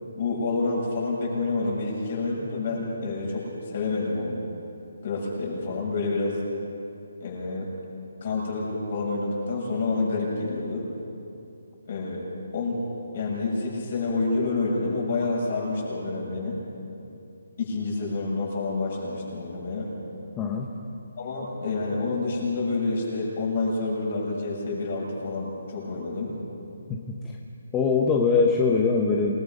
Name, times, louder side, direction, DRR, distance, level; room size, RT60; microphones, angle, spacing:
voice 1, 0.2-4.4 5.0-6.4 7.2-7.7 8.2-10.9 11.9-12.2 12.5-12.8 13.1-16.6 17.6-19.9 21.2-26.3, left 3 dB, 40° left, -3 dB, 7.4 m, -28 dB
voice 2, 20.4-20.7 26.9-27.2 27.7-29.4, left 4 dB, 10° left, -1 dB, 0.9 m, -22 dB
27.5 x 20.0 x 5.4 m, 2.6 s
hypercardioid pair, 170°, 0 cm